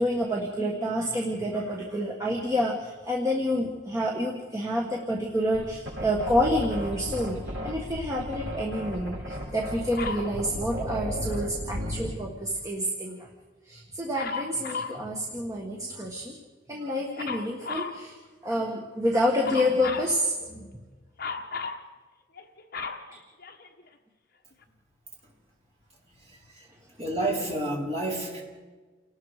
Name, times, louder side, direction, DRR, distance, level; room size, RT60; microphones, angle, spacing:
voice 1, 0.0-7.4 7.6-13.3 13.6-16.3 16.7-18.2 18.4-20.8 23.1-23.2, equal, 15° right, -1 dB, 1.6 m, -28 dB
sound 1, 5.5-12.2, equal, 65° right, 6.7 m, -34 dB
Dog, 10.0-10.3 14.1-15.0 17.2-18.0 19.4-20.1 21.2-21.8 22.4-23.9 24.6-24.7, left 4 dB, 45° left, 1.4 m, -35 dB
voice 2, 26.2-26.7 27.0-28.4, right 1 dB, 30° right, -2 dB, 4.1 m, -30 dB
29.0 x 18.5 x 5.0 m, 1.4 s
head